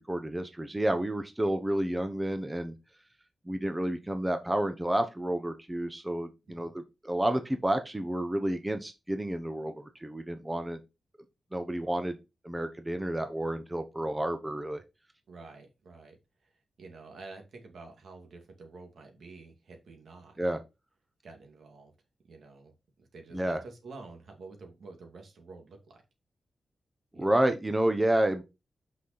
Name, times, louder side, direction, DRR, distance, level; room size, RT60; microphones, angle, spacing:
voice 1, 0.0-2.7 3.5-10.8 11.5-12.2 12.4-14.8 20.4-20.6 23.3-23.6 27.1-28.4, right 1 dB, 15° right, 7 dB, 1.0 m, -30 dB
voice 2, 15.3-16.2 16.8-20.4 21.2-21.9 22.2-22.7 23.0-26.0 27.1-27.4, right 3 dB, 75° right, 3 dB, 2.4 m, -49 dB
6.1 x 5.7 x 4.2 m, 0.26 s
cardioid pair, 85°, 0 cm